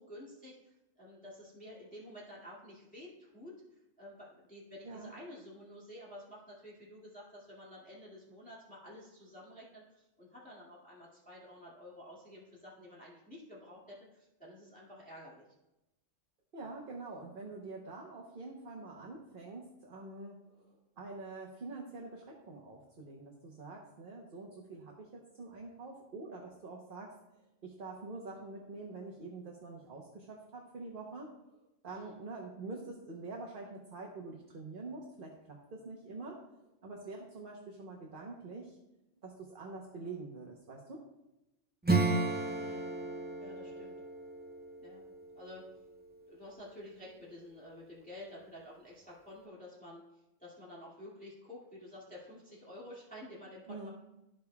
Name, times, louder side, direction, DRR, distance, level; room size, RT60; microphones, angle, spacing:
voice 1, 0.0-15.5 31.9-32.2 42.6-42.9 43.4-43.9 44.8-45.0 45.4-45.7 46.3-53.9, left 1 dB, 5° left, -7 dB, 2.1 m, -51 dB
voice 2, 16.5-27.1 27.6-31.3 31.8-36.4 36.8-38.8 39.2-41.0 53.7-53.9, right 3 dB, 45° right, -1 dB, 1.1 m, -46 dB
Acoustic guitar / Strum, 41.8-46.1, right 3 dB, 15° right, 0.4 m, -34 dB
14.0 x 5.2 x 2.3 m, 0.94 s
omnidirectional pair, 1.3 m